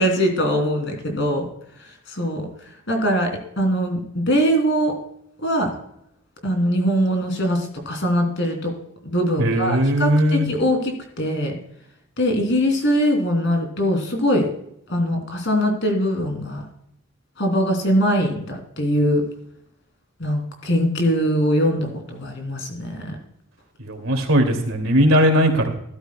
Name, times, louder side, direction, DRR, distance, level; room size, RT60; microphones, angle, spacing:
voice 1, 0.0-1.4 2.1-2.5 2.9-5.0 5.4-5.7 6.4-8.7 9.0-10.8 11.2-11.6 12.2-14.4 14.9-16.7 17.4-19.2 20.2-23.2, equal, 55° left, 3 dB, 2.9 m, -22 dB
voice 2, 9.4-10.5 23.8-25.7, equal, 80° right, 4 dB, 2.5 m, -18 dB
14.0 x 12.5 x 2.2 m, 0.74 s
head